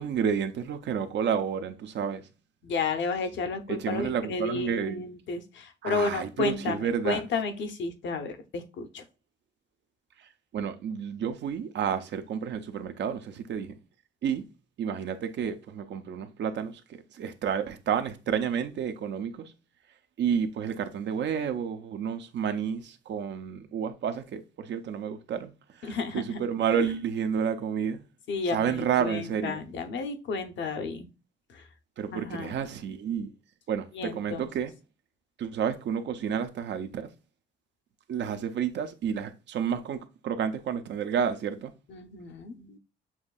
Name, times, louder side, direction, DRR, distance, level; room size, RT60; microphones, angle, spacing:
voice 1, 0.0-2.2 3.7-5.0 5.8-7.2 10.5-13.7 14.2-14.5 14.8-16.8 17.1-19.5 20.2-28.0 28.5-29.6 32.0-33.3 33.7-34.7 35.4-37.1 38.1-41.7, right 7 dB, 65° right, 0.7 m, -30 dB
voice 2, 2.6-9.0 25.8-26.4 28.3-31.1 31.5-31.6 32.1-32.6 33.9-34.5 41.9-42.8, left 4 dB, 65° left, 0.8 m, -32 dB
7.1 x 2.6 x 2.4 m
cardioid pair, 90°, 20 cm